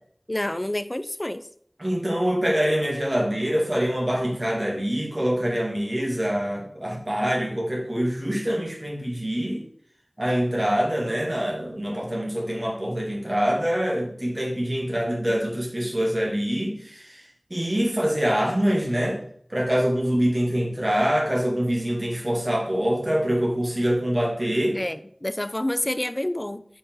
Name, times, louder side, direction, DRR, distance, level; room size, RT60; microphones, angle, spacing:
voice 1, 0.3-1.5 24.7-26.6, left 1 dB, 30° left, 13 dB, 0.4 m, -28 dB
voice 2, 1.8-9.6 10.2-17.2 17.5-19.2 19.5-24.8, equal, 35° right, -3 dB, 2.0 m, -25 dB
5.0 x 4.7 x 4.6 m, 0.62 s
wide cardioid pair, 50°, 0 cm